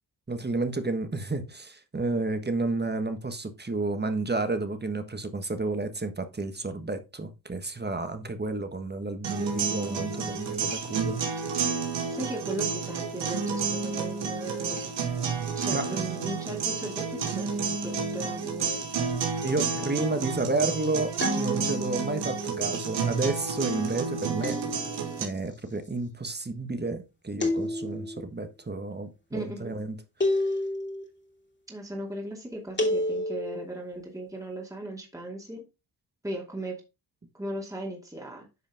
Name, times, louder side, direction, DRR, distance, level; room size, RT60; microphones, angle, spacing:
voice 1, 0.3-11.2 15.7-16.1 19.4-24.6 25.2-30.0, right 3 dB, 25° right, 1.5 m, -31 dB
sound 1, 9.2-25.2, right 5 dB, 80° right, 2.3 m, -30 dB
voice 2, 12.1-14.9 15.5-18.8 29.3-29.8 31.7-35.6 36.2-36.8 37.3-38.5, right 1 dB, 10° right, 2.6 m, -37 dB
sound 2, 21.2-22.0 24.4-25.2 27.4-28.2 30.2-31.0 32.8-33.6, left 1 dB, 25° left, 2.6 m, -29 dB
9.7 x 5.2 x 3.6 m
cardioid pair, 70°, 43 cm